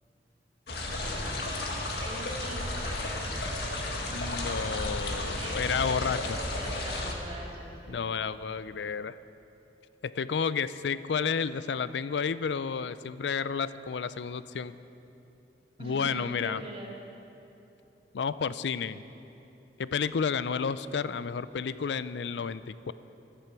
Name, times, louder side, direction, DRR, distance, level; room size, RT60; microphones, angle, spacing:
sound 1, 0.7-7.1, left 1 dB, 70° left, 1.7 m, -33 dB
voice 1, 0.8-1.3 2.0-3.2 5.3-6.1 6.6-8.1 15.8-17.0, right 1 dB, 30° right, -3 dB, 2.3 m, -43 dB
voice 2, 4.1-6.4 7.9-9.2 10.0-14.7 15.8-16.6 18.1-19.0 19.8-22.9, left 6 dB, 85° left, 15 dB, 0.4 m, -31 dB
14.5 x 12.5 x 6.0 m, 2.9 s
head